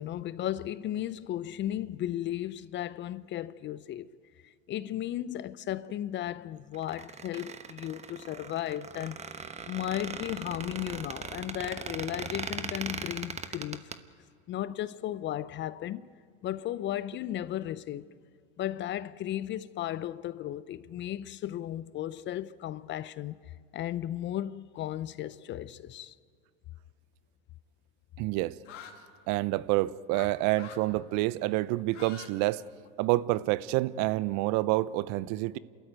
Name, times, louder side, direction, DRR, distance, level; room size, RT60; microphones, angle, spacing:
voice 1, 0.0-4.1 4.7-9.2 9.7-13.8 14.5-16.1 16.4-18.1 18.6-23.4 23.7-26.1, left 12 dB, 30° left, 0.6 m, -35 dB
Squeak, 6.7-14.0, right 5 dB, 20° right, 1.1 m, -39 dB
voice 2, 28.2-28.6 29.3-32.6 33.0-35.6, right 18 dB, 50° right, 0.7 m, -28 dB
sound 1, 28.6-29.0 30.1-30.3 30.5-30.8 31.8-32.3 32.6-33.4, left 8 dB, 80° left, 2.8 m, -46 dB
29.0 x 13.5 x 9.3 m
hypercardioid pair, 105°, 36 cm